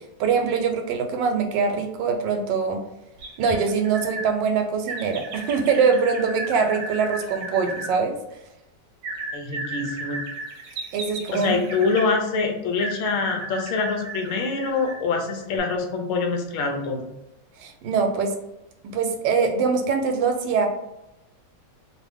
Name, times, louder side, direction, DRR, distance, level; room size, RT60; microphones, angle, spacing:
voice 1, 0.2-2.8 3.4-8.2 10.9-11.5 17.6-18.3 18.9-20.7, right 5 dB, 80° right, 4 dB, 1.2 m, -23 dB
sound 1, 3.2-4.3 4.9-7.9 9.0-12.1 12.8-15.1 15.5-15.6, right 2 dB, 60° right, 1.0 m, -34 dB
voice 2, 9.3-10.2 11.3-17.1, left 4 dB, 70° left, 2 dB, 0.7 m, -25 dB
2.7 x 2.6 x 3.4 m, 0.92 s
omnidirectional pair, 2.0 m